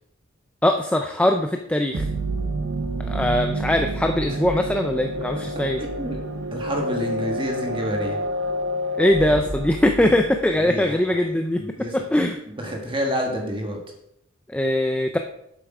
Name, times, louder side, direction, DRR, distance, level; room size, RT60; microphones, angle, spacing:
voice 1, 0.6-2.1 3.1-5.8 9.0-11.6 11.9-12.4 14.5-15.2, left 1 dB, 5° left, 4 dB, 0.4 m, -21 dB
sound 1, 1.9-10.6, right 1 dB, 75° right, 0.7 m, -28 dB
voice 2, 5.8-6.2 6.5-8.2 10.1-10.2 10.7-11.0 11.6-12.0 12.5-13.8, equal, 25° right, 1 dB, 1.4 m, -28 dB
8.0 x 7.8 x 4.8 m, 0.78 s
head